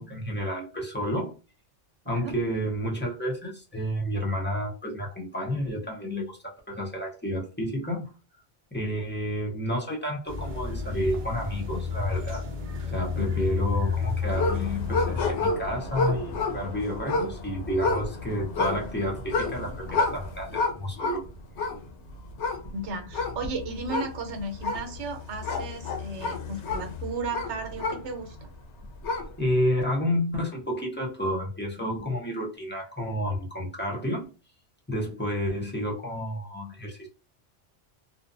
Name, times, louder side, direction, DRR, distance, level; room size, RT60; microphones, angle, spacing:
voice 1, 0.0-1.4 2.1-8.1 8.7-12.4 12.9-21.2 29.1-34.3 34.9-37.1, equal, 15° left, 0.5 m, -30 dB
sound 1, 10.3-15.3, left 6 dB, 50° right, 0.7 m, -31 dB
sound 2, 14.3-28.4 28.8-29.5, left 3 dB, 75° left, 0.9 m, -30 dB
voice 2, 22.7-28.4, right 3 dB, 80° right, 1.0 m, -35 dB
2.6 x 2.2 x 2.5 m
omnidirectional pair, 1.2 m